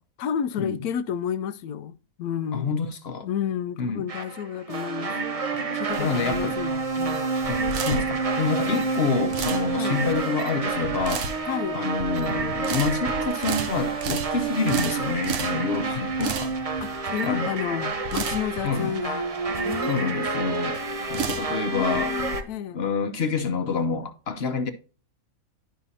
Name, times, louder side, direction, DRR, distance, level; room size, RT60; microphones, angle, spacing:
voice 1, 0.2-2.8 3.2-5.2 5.7-7.3 8.1-8.2 8.6-8.9 9.8-10.0 11.5-11.8 16.8-19.3 19.6-21.1 21.7-22.8, left 8 dB, 85° left, 1.1 m, -31 dB
voice 2, 2.5-3.3 3.8-4.1 6.0-6.6 7.5-11.3 11.7-16.5 17.2-17.5 18.6-18.9 19.9-20.8 21.1-22.1 22.7-24.7, left 5 dB, 50° left, 0.9 m, -27 dB
sound 1, 4.1-22.4, right 4 dB, 35° right, 0.6 m, -29 dB
sound 2, 5.9-22.4, right 5 dB, 60° right, 1.0 m, -34 dB
11.5 x 5.6 x 2.8 m
omnidirectional pair, 1.6 m